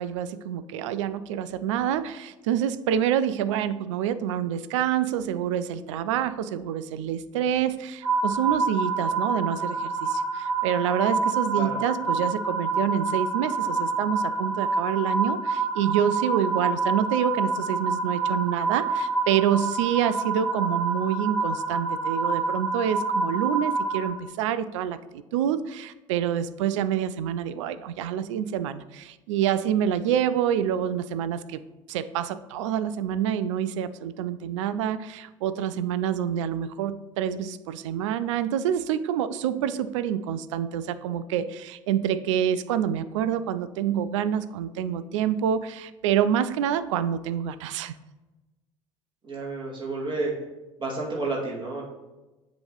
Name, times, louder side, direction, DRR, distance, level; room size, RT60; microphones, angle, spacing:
voice 1, 0.0-31.6 31.9-47.9, right 9 dB, 65° right, 14 dB, 0.4 m, -27 dB
sound 1, 8.0-24.1, right 4 dB, 15° right, 1.8 m, -27 dB
voice 2, 49.2-50.3 50.8-51.8, right 3 dB, 30° right, -4 dB, 2.2 m, -30 dB
7.6 x 3.1 x 5.4 m, 1.1 s
figure-of-eight pair, 60°, 17 cm